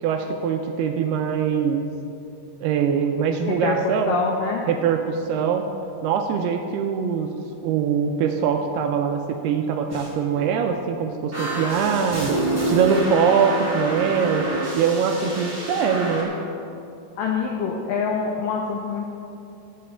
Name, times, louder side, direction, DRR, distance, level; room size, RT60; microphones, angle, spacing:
voice 1, 0.0-1.9 2.6-4.2 4.7-5.7 6.0-7.3 7.6-12.4 12.6-14.4 14.7-16.3, right 7 dB, 85° right, 4 dB, 2.3 m, -23 dB
voice 2, 3.5-4.7 17.2-19.1, left 4 dB, 90° left, 0 dB, 1.9 m, -25 dB
sound 1, 9.9-10.1 10.3-10.6 11.3-16.2, equal, 10° right, 0.6 m, -27 dB
14.5 x 7.6 x 4.4 m, 2.6 s
omnidirectional pair, 5.1 m